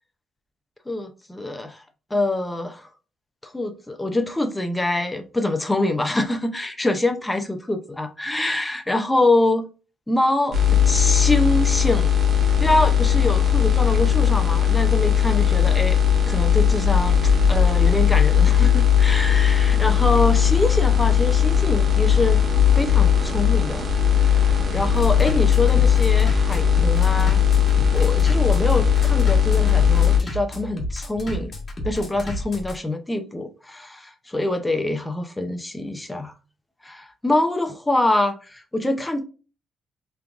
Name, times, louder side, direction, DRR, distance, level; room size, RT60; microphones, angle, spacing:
voice 1, 0.9-1.8 2.1-2.9 3.4-9.7 10.1-10.6 10.9-12.1 12.6-16.0 16.3-22.4 22.7-23.9 24.2-27.4 27.9-31.5 31.8-36.3 36.8-39.2, left 2 dB, 10° left, 0.5 m, -25 dB
sound 1, 10.5-30.2, left 8 dB, 50° right, 1.3 m, -18 dB
Bass drum, 16.8-32.8, equal, 35° left, 1.3 m, -33 dB
3.4 x 3.3 x 2.4 m
cardioid pair, 90°, 0 cm